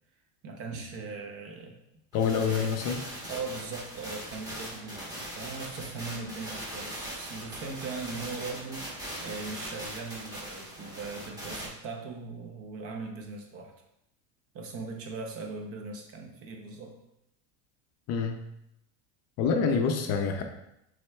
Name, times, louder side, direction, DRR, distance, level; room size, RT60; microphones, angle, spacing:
voice 1, 0.4-1.8 3.3-13.7 14.5-16.9, right 4 dB, 40° right, 2 dB, 0.7 m, -39 dB
voice 2, 2.1-3.0 18.1-18.4 19.4-20.4, left 5 dB, 45° left, 5 dB, 0.5 m, -26 dB
sound 1, 2.1-11.7, equal, 10° right, 1.1 m, -40 dB
6.1 x 3.5 x 2.3 m, 0.82 s
supercardioid pair, 140°, 37 cm